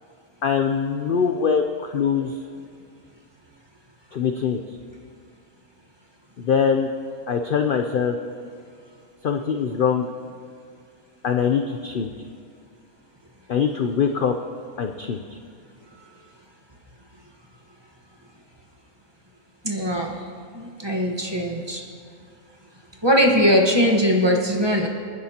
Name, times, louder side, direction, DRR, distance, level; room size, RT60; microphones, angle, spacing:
voice 1, 0.4-2.3 4.1-4.6 6.4-6.9 7.3-8.2 9.2-10.1 11.2-12.1 13.5-14.3 14.8-15.2, left 6 dB, 60° left, 6 dB, 0.6 m, -22 dB
voice 2, 19.6-20.2 20.5-21.8 23.0-24.9, equal, 20° right, 0 dB, 1.2 m, -20 dB
27.0 x 10.0 x 2.9 m, 2.2 s
omnidirectional pair, 1.4 m